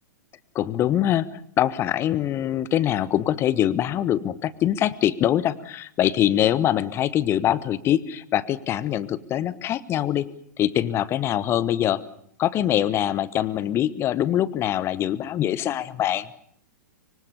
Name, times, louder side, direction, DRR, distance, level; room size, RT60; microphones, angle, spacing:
voice 1, 0.5-10.3 10.6-12.0 12.4-16.3, left 11 dB, 25° left, 18 dB, 1.2 m, -23 dB
25.0 x 24.0 x 7.2 m, 0.65 s
figure-of-eight pair, 105°, 10 cm